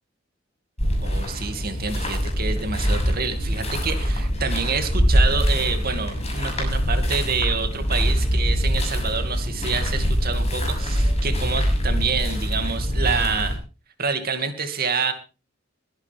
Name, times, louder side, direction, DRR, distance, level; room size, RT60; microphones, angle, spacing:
sound 1, 0.8-13.6, equal, 35° left, 6.6 m, -23 dB
voice 1, 1.0-13.6 14.0-15.1, right 5 dB, 50° right, 7 dB, 2.4 m, -27 dB
22.0 x 10.5 x 3.5 m, 0.32 s
head